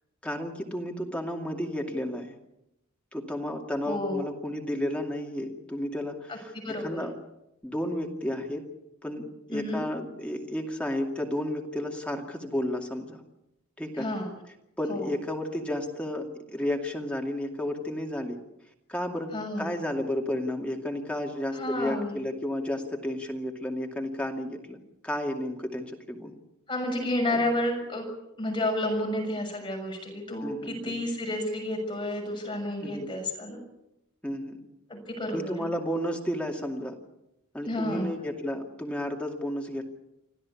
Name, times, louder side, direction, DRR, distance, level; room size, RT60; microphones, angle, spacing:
voice 1, 0.2-2.4 3.1-7.1 7.6-8.6 9.0-13.2 13.8-14.1 14.8-18.4 18.9-19.3 19.6-24.8 25.0-26.3 27.3-27.5 30.4-31.1 32.8-33.1 34.2-34.6 35.3-37.0 37.5-39.8, left 1 dB, 5° left, 1 dB, 2.4 m, -32 dB
voice 2, 3.9-4.2 6.3-6.4 6.6-7.0 9.5-9.8 14.0-14.3 14.9-15.1 19.3-19.7 21.5-22.2 26.7-28.0 28.4-33.6 34.9-35.6 37.6-38.1, left 1 dB, 20° left, 1 dB, 6.7 m, -30 dB
26.0 x 15.0 x 8.6 m, 0.87 s
head